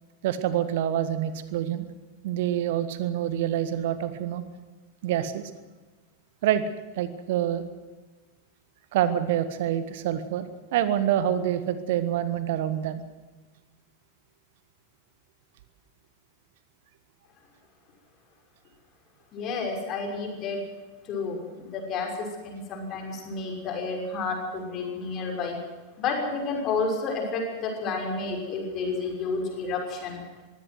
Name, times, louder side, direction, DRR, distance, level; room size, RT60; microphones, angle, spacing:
voice 1, 0.2-1.9 2.2-4.4 5.0-5.5 6.4-6.6 7.0-7.6 8.9-13.0, right 11 dB, 55° right, 13 dB, 1.3 m, -26 dB
voice 2, 19.3-20.6 21.1-25.6 26.0-30.2, left 4 dB, 35° left, 2 dB, 6.0 m, -30 dB
22.0 x 16.5 x 7.9 m, 1.2 s
figure-of-eight pair, 90°, 0 cm